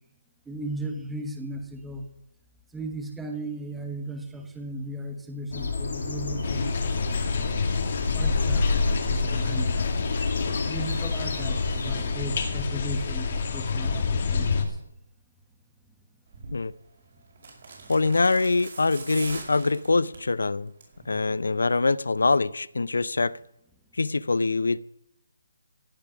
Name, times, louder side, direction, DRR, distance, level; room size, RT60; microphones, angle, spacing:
voice 1, 0.5-2.1 2.7-7.5 8.1-9.8 10.6-14.8 16.4-16.5 17.8-17.9 21.0-21.2, right 1 dB, 5° right, 1.4 m, -36 dB
sound 1, 5.5-12.2, left 3 dB, 65° left, 5.1 m, -31 dB
sound 2, 6.4-14.6, left 4 dB, 45° left, 2.2 m, -27 dB
sound 3, 16.3-16.6 17.4-20.3 20.7-21.0 21.3-21.4, right 4 dB, 55° right, 5.3 m, -42 dB
voice 2, 17.9-20.7 21.1-23.4 24.0-24.8, left 3 dB, 80° left, 0.5 m, -24 dB
16.0 x 8.7 x 6.1 m
hypercardioid pair, 160°, 0 cm